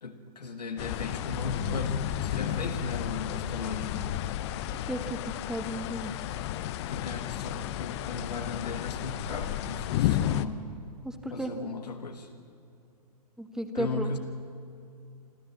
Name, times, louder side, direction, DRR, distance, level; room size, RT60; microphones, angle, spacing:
voice 1, 0.0-4.1 6.8-10.7 11.3-12.3 13.7-14.2, left 3 dB, 80° left, 4 dB, 1.6 m, -36 dB
sound 1, 0.8-10.5, left 12 dB, 45° left, 0.8 m, -32 dB
voice 2, 4.9-6.1 11.2-11.5 13.4-14.1, right 1 dB, 5° right, 7 dB, 1.5 m, -34 dB
26.0 x 13.5 x 7.3 m, 2.6 s
figure-of-eight pair, 110°, 20 cm